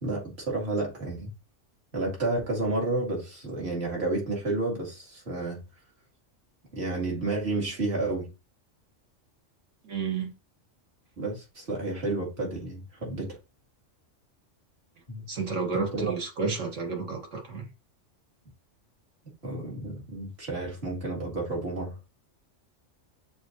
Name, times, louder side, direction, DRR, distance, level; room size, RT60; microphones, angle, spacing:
voice 1, 0.0-1.3 1.9-5.6 6.7-8.3 11.2-13.4 15.1-15.2 15.7-16.1 19.4-22.0, right 2 dB, 55° right, 2.2 m, -31 dB
voice 2, 9.8-10.3 15.3-17.7, right 4 dB, 70° right, 1.7 m, -31 dB
6.6 x 2.7 x 2.6 m
omnidirectional pair, 1.3 m